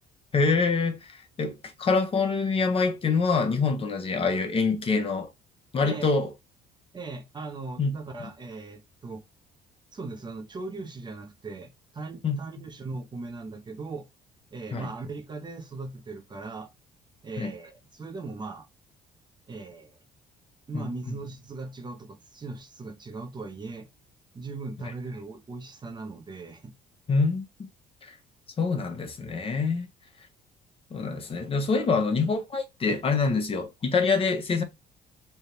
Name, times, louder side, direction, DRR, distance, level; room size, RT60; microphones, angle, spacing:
voice 1, 0.3-1.1 1.4-5.3 5.7-6.3 7.8-8.0 12.2-12.4 14.7-14.9 17.4-17.5 20.7-20.9 27.1-27.4 28.0-28.1 28.6-29.9 30.9-34.6, left 4 dB, 35° left, 0.9 m, -25 dB
voice 2, 6.9-9.2 9.9-14.0 14.5-16.7 17.2-18.7 19.5-20.0 20.7-23.9 24.3-26.7, right 3 dB, 25° right, 0.7 m, -39 dB
3.4 x 2.4 x 4.3 m
cardioid pair, 110°, 17 cm